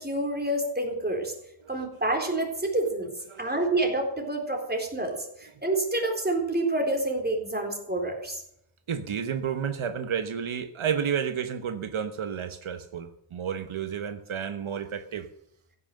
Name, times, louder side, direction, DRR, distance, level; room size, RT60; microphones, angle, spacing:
voice 1, 0.0-1.3 1.7-3.1 3.4-8.4, right 2 dB, 20° right, 2 dB, 4.0 m, -28 dB
voice 2, 8.9-15.3, right 8 dB, 75° right, 9 dB, 1.2 m, -31 dB
15.5 x 9.9 x 6.7 m, 0.78 s
wide cardioid pair, 140°, 49 cm